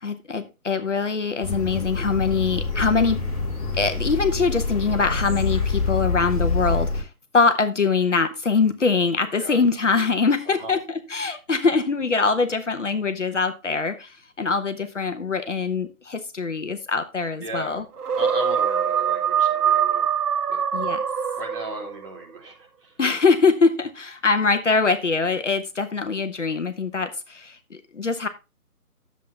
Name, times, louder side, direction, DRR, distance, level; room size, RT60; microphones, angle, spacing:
voice 1, 0.0-3.2 3.7-7.1 7.3-17.8 20.7-21.0 23.0-28.3, left 4 dB, 50° left, 1.0 m, -23 dB
sound 1, 1.4-7.0, left 3 dB, 25° left, 2.0 m, -26 dB
voice 2, 17.4-17.8 18.1-20.1 20.5-20.6 21.4-23.0, right 1 dB, 35° right, 3.5 m, -36 dB
sound 2, 18.0-22.1, right 8 dB, 85° right, 0.7 m, -23 dB
10.5 x 7.4 x 3.2 m
figure-of-eight pair, 155°, 45 cm